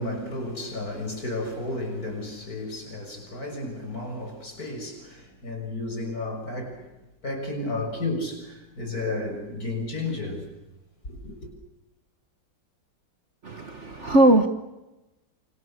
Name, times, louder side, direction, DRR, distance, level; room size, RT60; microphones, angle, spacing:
voice 1, 0.0-6.9 7.2-10.5 11.0-11.5, left 2 dB, 50° left, 7.1 m, -32 dB
voice 2, 13.4-14.5, right 1 dB, 40° right, 1.6 m, -19 dB
29.0 x 26.0 x 6.7 m
omnidirectional pair, 2.0 m